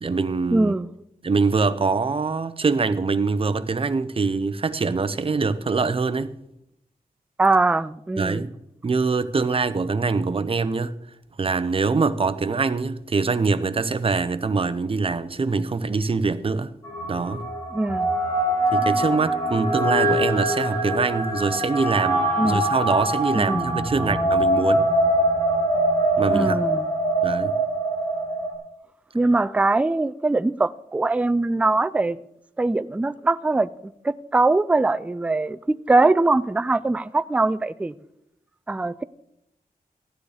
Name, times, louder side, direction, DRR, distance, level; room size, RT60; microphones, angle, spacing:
voice 1, 0.0-0.8 1.2-6.4 8.2-8.5 8.8-10.9 11.4-16.7 17.1-17.4 18.7-24.9 26.2-26.6 27.2-27.5, right 4 dB, 35° right, 0.7 m, -24 dB
voice 2, 0.5-0.9 7.4-8.4 17.7-18.1 22.4-22.6 23.3-23.7 26.3-26.9 29.1-32.2 32.6-33.7 34.0-37.9 38.7-39.0, right 2 dB, 10° right, 0.3 m, -22 dB
sound 1, 16.8-28.5, right 1 dB, 25° left, 5.0 m, -23 dB
14.5 x 9.5 x 4.9 m
wide cardioid pair, 120°, 15 cm